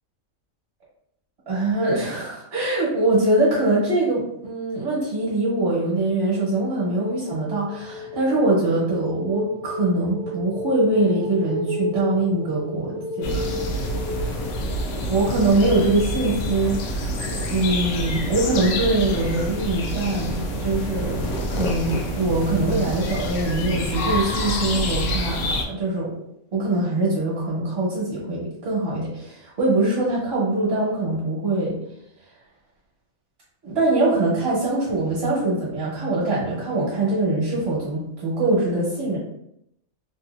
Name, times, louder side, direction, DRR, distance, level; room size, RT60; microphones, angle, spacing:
voice 1, 1.5-13.5 14.2-14.4 14.9-26.1 26.5-31.8 33.6-39.2, right 2 dB, 50° right, -8 dB, 1.4 m, -23 dB
sound 1, 6.6-15.3, equal, 65° right, 0.7 m, -32 dB
sound 2, 13.2-25.7, equal, 85° left, 1.1 m, -27 dB
3.2 x 2.7 x 2.4 m, 0.78 s
omnidirectional pair, 1.5 m